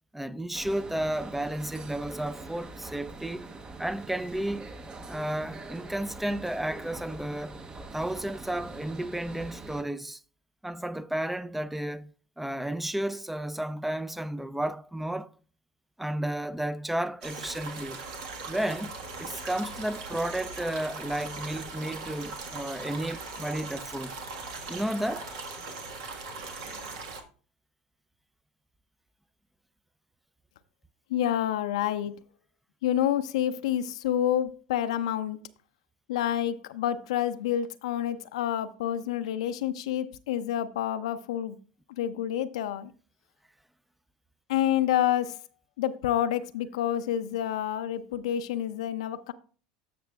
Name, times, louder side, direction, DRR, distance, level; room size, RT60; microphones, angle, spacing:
voice 1, 0.1-3.5 3.8-4.7 5.1-7.6 7.9-10.2 10.6-12.1 12.4-15.3 16.0-18.1 18.5-18.9 19.2-24.2 24.7-25.3, right 1 dB, 5° right, 0.4 m, -32 dB
sound 1, 0.5-9.8, right 3 dB, 25° right, 0.8 m, -43 dB
sound 2, 17.2-27.2, right 3 dB, 75° right, 1.5 m, -40 dB
voice 2, 31.1-32.2 32.8-35.4 36.1-41.6 42.0-42.9 44.5-45.4 45.8-49.3, left 11 dB, 80° left, 0.5 m, -28 dB
13.0 x 5.9 x 2.3 m
hypercardioid pair, 90°, 3 cm